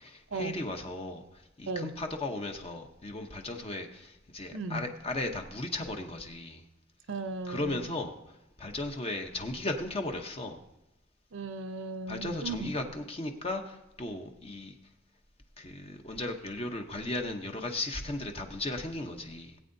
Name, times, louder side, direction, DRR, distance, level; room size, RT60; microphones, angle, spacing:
voice 1, 0.0-6.6 7.4-10.6 12.1-14.8 15.6-19.6, left 2 dB, 30° left, 0.8 m, -36 dB
voice 2, 4.5-4.8 7.1-7.9 11.3-12.7, right 3 dB, 75° right, 0.7 m, -36 dB
19.0 x 8.6 x 2.7 m
head